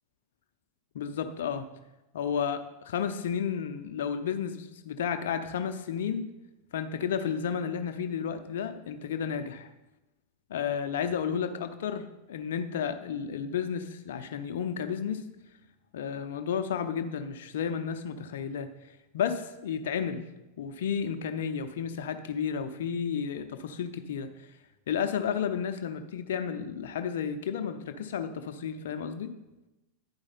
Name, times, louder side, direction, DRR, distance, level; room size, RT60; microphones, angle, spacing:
voice 1, 0.9-1.7 2.1-6.3 6.7-9.7 10.5-15.2 15.9-20.3 20.6-24.5 24.9-29.4, left 7 dB, 60° left, 8 dB, 0.6 m, -32 dB
11.0 x 4.8 x 4.2 m, 1.0 s
figure-of-eight pair, 90°, 0 cm